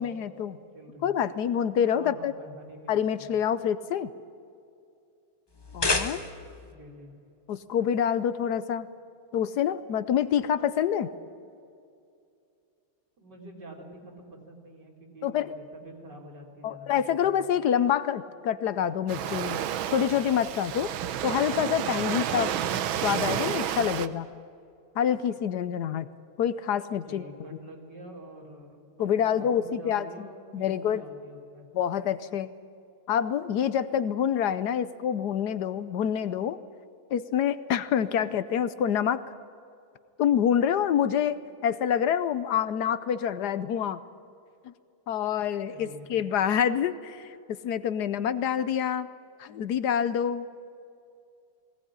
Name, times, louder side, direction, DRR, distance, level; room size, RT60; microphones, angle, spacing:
voice 1, 0.0-0.6 1.0-2.3 2.9-4.1 5.7-6.2 7.5-8.9 9.3-11.1 15.2-15.5 16.6-19.6 19.9-20.9 21.2-22.5 23.0-24.3 25.0-26.1 26.4-27.2 29.0-30.3 30.5-31.0 31.7-32.5 33.1-36.6 37.1-39.2 40.2-41.4 41.6-44.0 44.6-44.7 45.1-49.1 49.4-50.5, left 9 dB, 65° left, 14 dB, 1.0 m, -27 dB
voice 2, 0.7-1.1 1.9-3.4 6.6-7.1 8.7-8.8 13.2-17.4 26.9-31.7 45.6-46.2, right 1 dB, 50° right, -1 dB, 4.3 m, -47 dB
sound 1, 5.5-6.6, left 2 dB, 25° left, 0.5 m, -29 dB
Waves surf, 19.1-24.1, right 10 dB, 70° right, 1.5 m, -30 dB
20.5 x 18.0 x 10.0 m, 2.5 s
omnidirectional pair, 2.4 m